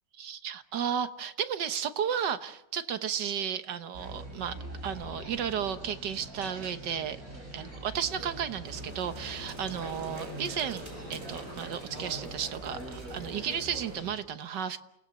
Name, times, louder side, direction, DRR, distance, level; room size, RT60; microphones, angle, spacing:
voice 1, 0.2-4.6 4.8-7.2 7.5-14.8, right 8 dB, 85° right, 11 dB, 1.8 m, -33 dB
sound 1, 3.9-14.2, right 1 dB, 55° right, 7.2 m, -43 dB
sound 2, 8.6-14.0, right 1 dB, 40° right, 5.0 m, -48 dB
28.5 x 18.5 x 7.5 m, 0.85 s
omnidirectional pair, 1.8 m